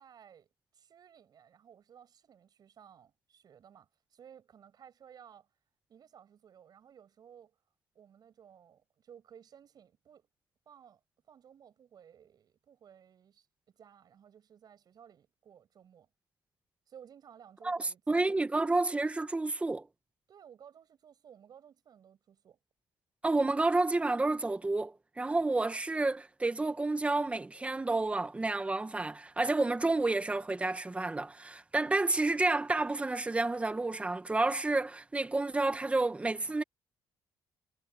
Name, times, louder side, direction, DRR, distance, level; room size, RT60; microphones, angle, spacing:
voice 1, 0.0-5.5 5.9-7.5 7.9-10.3 10.7-11.0 11.3-16.1 16.9-18.0 20.3-22.6, right 8 dB, 50° right, 7.9 m, -57 dB
voice 2, 17.6-19.9 23.2-36.6, right 2 dB, 15° right, 1.4 m, -30 dB
cardioid pair, 115°, 9 cm